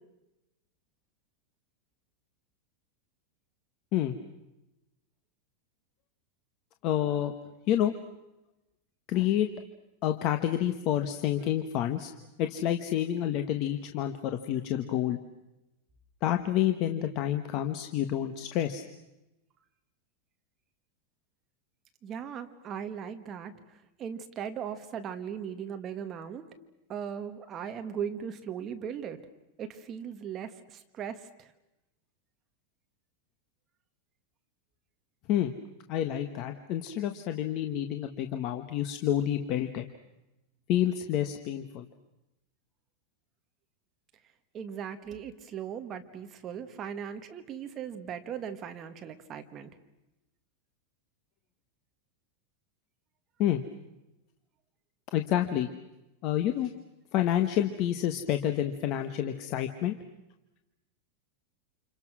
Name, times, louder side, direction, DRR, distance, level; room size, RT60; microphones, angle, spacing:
voice 1, 6.8-7.3 7.7-7.9 9.1-9.5 10.0-12.1 12.4-15.2 16.2-18.8 35.3-35.5 35.9-39.8 40.7-41.9 53.4-53.6 55.1-55.7 56.2-56.7 57.1-60.0, left 11 dB, 35° left, 7 dB, 1.2 m, -28 dB
voice 2, 22.0-23.5 24.0-26.5 26.9-29.2 29.6-31.5 44.5-49.7, right 8 dB, 20° right, 7 dB, 1.5 m, -38 dB
29.5 x 27.5 x 6.2 m, 0.95 s
supercardioid pair, 175°, 0 cm